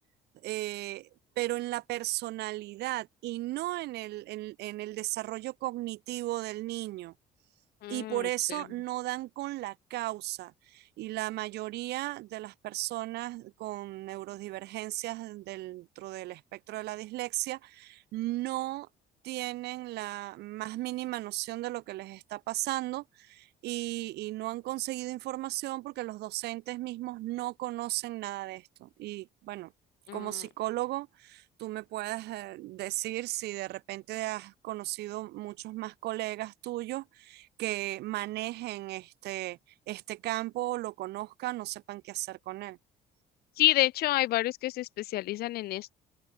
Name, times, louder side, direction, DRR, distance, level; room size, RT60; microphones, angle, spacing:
voice 1, 0.4-1.1 1.4-7.1 7.9-18.9 19.2-29.7 30.1-39.6 39.9-42.8, right 17 dB, 75° right, 0.8 m, -35 dB
voice 2, 7.8-8.6 30.1-30.4 43.6-45.9, left 16 dB, 65° left, 0.5 m, -29 dB
open air
cardioid pair, 110°, 17 cm